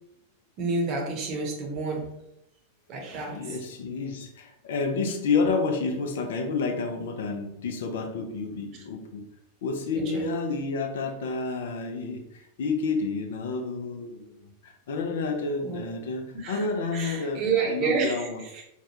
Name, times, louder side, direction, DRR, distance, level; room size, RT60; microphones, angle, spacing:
voice 1, 0.6-2.1 2.9-3.6 10.1-10.3 15.6-15.9 16.3-16.6 16.9-18.3, right 4 dB, 40° right, 0 dB, 0.8 m, -29 dB
voice 2, 3.3-9.3 9.6-18.4, left 4 dB, 60° left, 4 dB, 0.4 m, -30 dB
3.2 x 2.1 x 2.8 m, 0.83 s
figure-of-eight pair, 90°, 0 cm